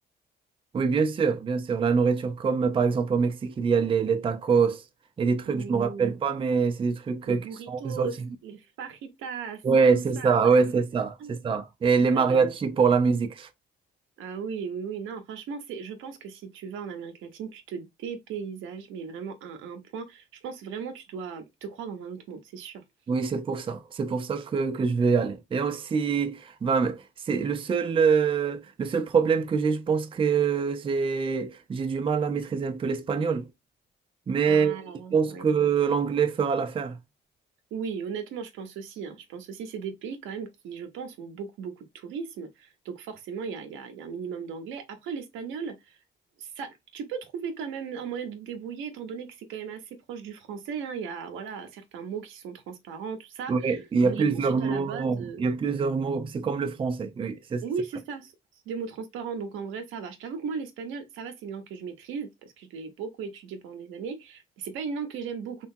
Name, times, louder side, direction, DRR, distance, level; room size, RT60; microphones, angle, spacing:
voice 1, 0.7-4.8 5.2-8.1 9.6-13.5 23.1-33.5 34.3-34.8 35.1-37.0 53.5-57.6, right 5 dB, 25° right, 0.4 m, -25 dB
voice 2, 5.4-6.1 7.3-8.2 8.4-9.6 9.9-10.6 11.2-11.4 12.1-12.8 14.2-22.8 34.5-35.5 37.7-46.0 46.4-55.4 57.6-58.3 58.7-65.7, right 6 dB, 90° right, 0.7 m, -37 dB
2.9 x 2.2 x 2.6 m
cardioid pair, 90°, 20 cm